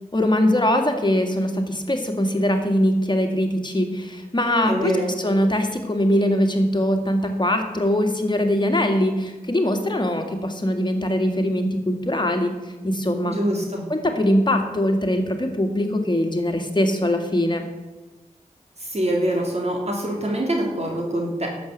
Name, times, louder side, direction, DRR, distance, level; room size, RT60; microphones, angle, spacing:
voice 1, 0.1-12.5 12.8-13.4 13.9-17.6, left 1 dB, 30° left, 3 dB, 2.2 m, -22 dB
voice 2, 4.6-5.1 13.3-13.8 18.8-21.5, right 1 dB, 50° right, -1 dB, 3.1 m, -24 dB
11.5 x 7.6 x 8.2 m, 1.1 s
wide cardioid pair, 55°, 14 cm